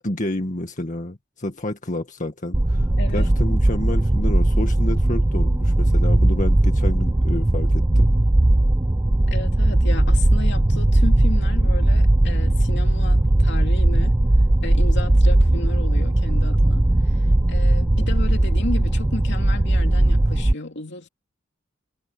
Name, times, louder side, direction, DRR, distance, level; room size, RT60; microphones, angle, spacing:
voice 1, 0.0-8.1, left 1 dB, 40° left, 2.0 m, -29 dB
sound 1, 2.5-20.5, right 1 dB, 15° right, 0.5 m, -18 dB
voice 2, 3.0-3.3 9.3-14.2 14.6-17.2 17.5-21.1, left 2 dB, 60° left, 2.9 m, -33 dB
head